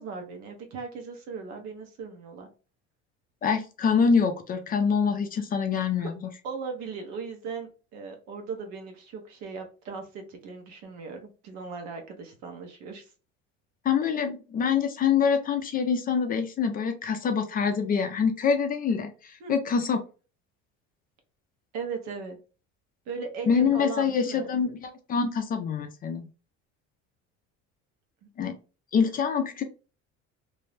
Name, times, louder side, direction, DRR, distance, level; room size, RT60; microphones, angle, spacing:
voice 1, 0.0-2.5 6.0-6.1 6.4-13.1 19.4-19.5 21.7-22.4 23.1-24.5, right 5 dB, 70° right, 4 dB, 0.9 m, -38 dB
voice 2, 3.4-6.1 13.8-20.0 23.5-26.3 28.4-28.6 28.9-29.6, left 6 dB, 30° left, 7 dB, 0.4 m, -25 dB
2.6 x 2.0 x 3.2 m, 0.34 s
cardioid pair, 125°, 29 cm